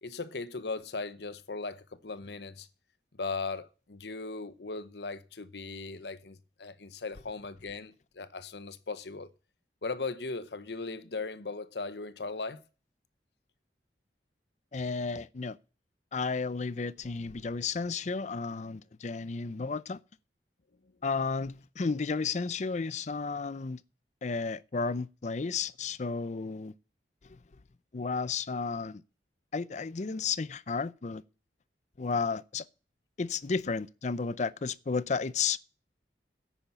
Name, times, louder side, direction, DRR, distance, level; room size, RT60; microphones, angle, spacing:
voice 1, 0.0-2.7 3.2-9.3 9.8-12.6, left 3 dB, 70° left, 0.9 m, -38 dB
voice 2, 14.7-15.6 16.1-20.0 21.0-23.8 24.2-26.7 27.9-29.0 29.5-31.2 32.0-32.6 33.2-35.6, left 4 dB, 40° left, 0.5 m, -32 dB
10.0 x 8.9 x 7.0 m
head